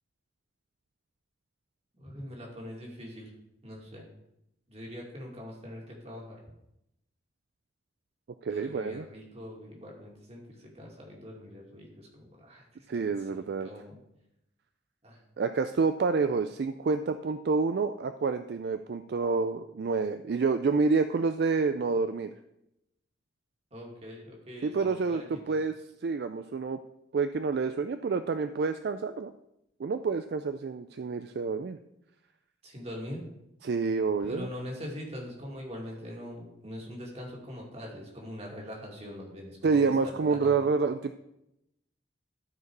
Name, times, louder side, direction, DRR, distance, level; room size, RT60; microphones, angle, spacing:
voice 1, 2.0-3.3 3.6-4.1 4.7-6.4 8.5-13.0 13.3-14.0 15.0-15.2 23.7-25.4 32.6-33.3 34.2-40.7, equal, 35° right, -1 dB, 2.2 m, -43 dB
voice 2, 8.4-9.1 12.9-13.7 15.4-22.3 24.6-25.8 26.0-26.8 27.1-29.3 29.8-31.8 33.6-34.5 39.6-41.2, right 4 dB, 60° right, 9 dB, 0.4 m, -28 dB
13.0 x 4.7 x 4.7 m, 0.83 s
head